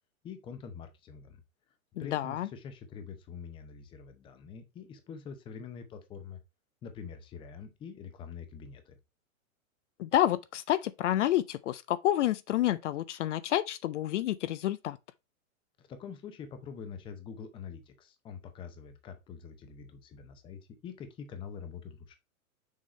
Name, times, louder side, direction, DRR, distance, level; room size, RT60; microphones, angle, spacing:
voice 1, 0.2-1.4 2.0-6.4 6.8-9.0 15.8-22.2, left 6 dB, 10° left, 0.7 m, -45 dB
voice 2, 2.0-2.5 10.0-15.0, left 13 dB, 60° left, 0.5 m, -29 dB
6.4 x 3.6 x 4.3 m
hypercardioid pair, 150°, 41 cm